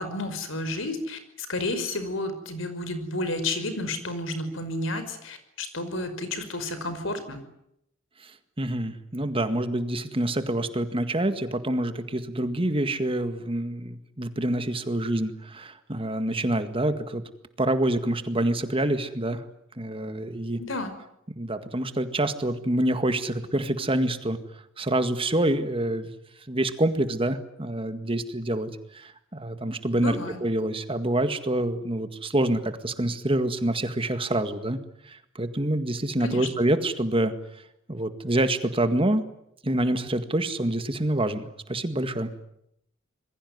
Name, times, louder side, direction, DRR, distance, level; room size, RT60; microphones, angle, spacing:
voice 1, 0.0-7.4 20.6-20.9 30.0-30.4 36.2-36.5, left 2 dB, 70° left, 10 dB, 5.4 m, -31 dB
voice 2, 8.6-17.2 17.6-19.4 19.8-20.6 21.4-24.4 24.8-26.1 26.5-34.8 35.1-37.3 37.9-39.2 39.6-42.3, right 1 dB, 25° right, 9 dB, 1.9 m, -26 dB
27.0 x 22.0 x 9.6 m, 0.76 s
head